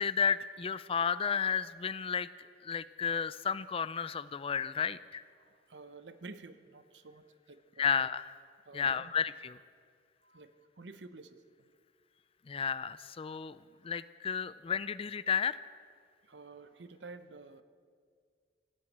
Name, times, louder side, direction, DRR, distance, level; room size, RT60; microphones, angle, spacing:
voice 1, 0.0-2.3 2.6-5.2 7.8-8.3 8.7-9.6 12.5-13.6 13.8-15.7, left 7 dB, 30° left, 16 dB, 0.4 m, -32 dB
voice 2, 5.4-8.0 8.6-9.1 10.2-11.7 13.3-13.4 16.2-17.6, right 3 dB, 75° right, 11 dB, 0.8 m, -51 dB
16.0 x 11.5 x 7.4 m, 2.1 s
head